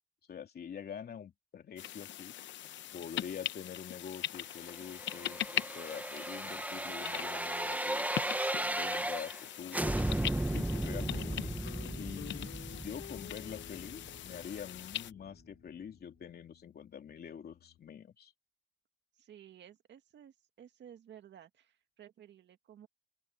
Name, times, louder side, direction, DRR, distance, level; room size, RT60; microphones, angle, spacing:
voice 1, 0.3-2.3 2.9-9.3 9.6-11.6 12.0-18.3, left 8 dB, 55° left, 3.2 m, -46 dB
sound 1, 1.8-15.1, left 12 dB, 70° left, 0.8 m, -41 dB
sound 2, 4.7-9.4 9.7-14.6 14.9-15.0, right 1 dB, 10° right, 1.1 m, -36 dB
Guitar, 11.1-17.8, left 14 dB, 90° left, 5.3 m, -53 dB
voice 2, 12.4-12.9 19.2-22.9, right 9 dB, 65° right, 2.1 m, -55 dB
open air
cardioid pair, 90°, 20 cm